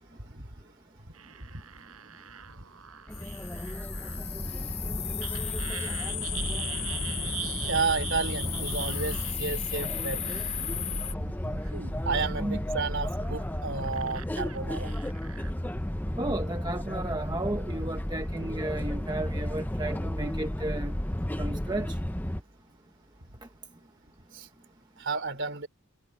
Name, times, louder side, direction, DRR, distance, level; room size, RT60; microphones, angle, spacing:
sound 1, 1.1-4.3 5.2-9.5 10.2-10.7 11.6-12.0 12.9-15.5, right 11 dB, 75° right, 6.3 m, -42 dB
sound 2, 3.1-11.1, left 10 dB, 30° left, 3.9 m, -36 dB
sound 3, 3.1-22.4, equal, 10° left, 0.8 m, -33 dB
voice 1, 7.7-10.2 11.2-11.6 12.1-14.9 24.3-24.5 25.0-25.7, right 4 dB, 55° right, 3.6 m, -32 dB
voice 2, 16.2-21.0 21.4-22.0, right 1 dB, 20° right, 1.1 m, -33 dB
head